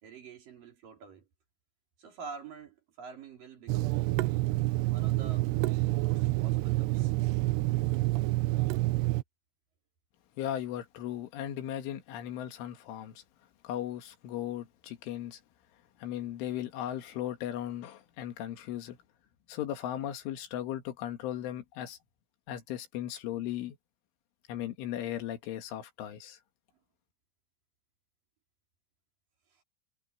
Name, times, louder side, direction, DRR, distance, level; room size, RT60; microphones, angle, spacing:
voice 1, 0.0-1.3 2.0-4.1 4.9-5.5 6.0-7.1 29.5-29.6, right 5 dB, 50° right, 4.7 m, -47 dB
Water tap faucet / Sink (filling or washing), 3.7-9.2, right 19 dB, 85° right, 2.4 m, -28 dB
voice 2, 10.4-13.2 13.6-15.4 16.0-19.0 19.5-22.0 22.5-23.8 24.5-26.4, left 11 dB, 90° left, 4.4 m, -37 dB
omnidirectional pair, 5.4 m